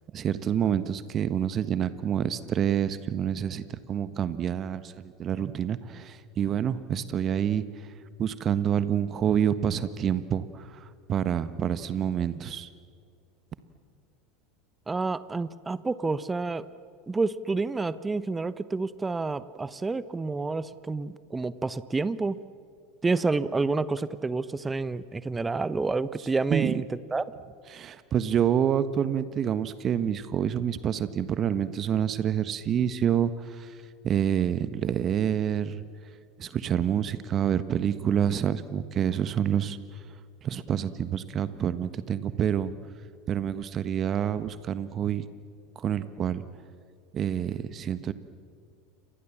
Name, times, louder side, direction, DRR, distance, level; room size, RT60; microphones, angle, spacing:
voice 1, 0.1-7.7 8.2-10.8 11.1-12.7 26.5-26.7 27.7-33.7 34.0-35.8 36.4-39.8 40.4-42.7 43.3-45.2 45.7-46.4 47.1-48.1, right 9 dB, 35° right, 13 dB, 1.4 m, -27 dB
voice 2, 14.9-16.7 17.1-22.4 23.0-26.8 27.1-27.3, right 3 dB, 15° right, 16 dB, 1.0 m, -29 dB
29.0 x 26.0 x 7.4 m, 2.2 s
figure-of-eight pair, 80°, 0 cm